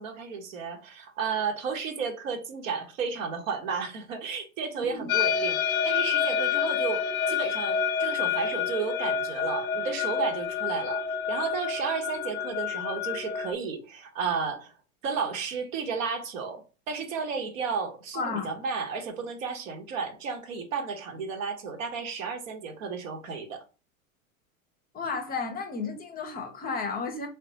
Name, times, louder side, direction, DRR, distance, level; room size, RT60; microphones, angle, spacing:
voice 1, 0.0-11.0 11.3-14.7 15.0-16.6 16.9-23.6, right 5 dB, 65° right, 0.9 m, -33 dB
voice 2, 4.8-5.1 18.1-18.5 24.9-27.3, left 4 dB, 20° left, 0.6 m, -33 dB
sound 1, 5.1-13.5, left 7 dB, 80° left, 0.5 m, -28 dB
3.6 x 2.2 x 2.8 m
hypercardioid pair, 90°, 42 cm